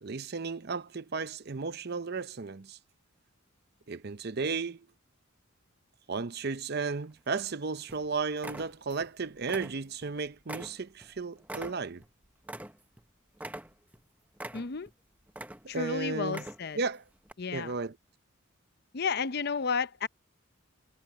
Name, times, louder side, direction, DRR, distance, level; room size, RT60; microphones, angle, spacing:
voice 1, 0.0-2.8 3.9-4.9 6.1-12.0 15.6-16.4 16.7-17.0 17.5-18.0, right 4 dB, 50° right, 0.7 m, -34 dB
sound 1, 7.3-7.5 7.9-8.1 8.4-9.1 9.4-10.1 10.5-13.0 13.4-14.0 14.4-14.9 15.3-15.9 16.2-16.8 17.3-17.4, right 1 dB, 10° right, 0.8 m, -43 dB
voice 2, 14.5-14.9 15.7-16.8 17.4-17.7 18.9-20.1, left 5 dB, 50° left, 0.6 m, -32 dB
head